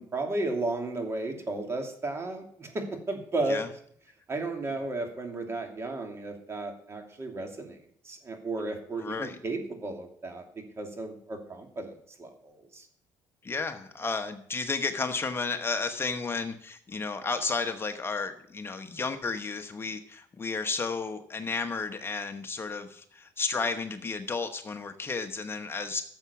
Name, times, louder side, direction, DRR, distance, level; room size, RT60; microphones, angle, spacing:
voice 1, 0.0-3.6 4.3-7.8 8.0-11.9 12.2-12.9, right 2 dB, 35° right, 4 dB, 2.7 m, -34 dB
voice 2, 9.0-9.4 13.4-26.0, left 4 dB, 30° left, 7 dB, 1.0 m, -32 dB
12.0 x 7.1 x 7.0 m, 0.64 s
cardioid pair, 90°, 8 cm